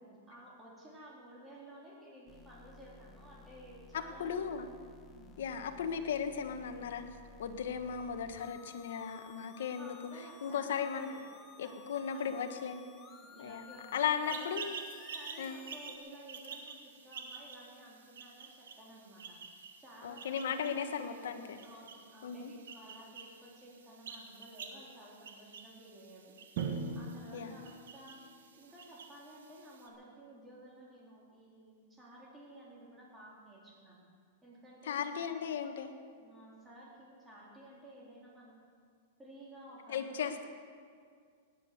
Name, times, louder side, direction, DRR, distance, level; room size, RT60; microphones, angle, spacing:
voice 1, 0.0-4.3 5.1-5.4 9.7-11.2 11.6-12.6 12.9-14.0 14.3-14.5 15.1-19.4 19.8-26.3 26.9-28.2 28.5-34.0 34.4-35.3 36.2-38.6 39.2-40.2, right 1 dB, 10° right, -5 dB, 3.9 m, -54 dB
sound 1, 2.3-16.0, left 4 dB, 20° left, 1.3 m, -56 dB
voice 2, 3.9-4.7 5.4-7.0 7.4-9.9 10.4-11.2 11.6-12.8 13.4-13.6 13.9-14.8 15.4-15.6 20.0-21.4 22.2-22.5 27.3-27.5 34.8-35.9 39.9-40.5, left 7 dB, 80° left, 7 dB, 1.4 m, -36 dB
sound 2, 14.2-29.9, right 5 dB, 90° right, 1.8 m, -50 dB
Drum, 26.6-28.5, right 4 dB, 50° right, 1.5 m, -40 dB
18.5 x 9.7 x 6.7 m, 2.1 s
supercardioid pair, 145°, 0 cm